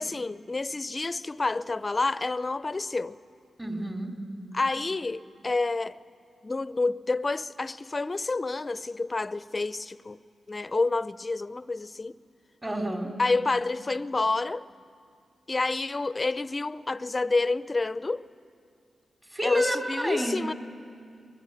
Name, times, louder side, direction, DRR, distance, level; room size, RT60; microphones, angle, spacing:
voice 1, 0.0-3.2 4.5-5.9 6.4-10.2 10.5-12.1 13.2-14.7 15.5-18.2 19.4-20.5, left 3 dB, 35° left, 0.6 m, -28 dB
voice 2, 3.6-4.1 12.6-13.1 19.3-20.5, right 1 dB, 20° right, 4.0 m, -30 dB
23.5 x 21.5 x 9.1 m
supercardioid pair, 45°, 0 cm